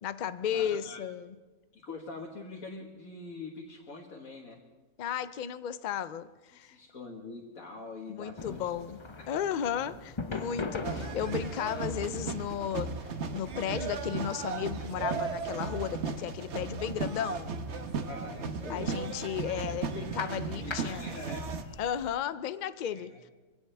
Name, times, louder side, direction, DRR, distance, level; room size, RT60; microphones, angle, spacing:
voice 1, 0.0-1.4 5.0-6.8 8.1-17.5 18.7-21.2 21.8-23.1, left 9 dB, 90° left, 0.4 m, -34 dB
voice 2, 0.5-1.0 1.7-4.6 6.6-8.7 18.0-18.9 20.6-21.5 22.9-23.0, left 3 dB, 70° left, 2.0 m, -44 dB
sound 1, 8.4-22.1, left 3 dB, 30° left, 0.6 m, -44 dB
sound 2, 10.8-21.6, right 4 dB, 55° right, 1.2 m, -36 dB
24.0 x 17.0 x 3.4 m
omnidirectional pair, 1.5 m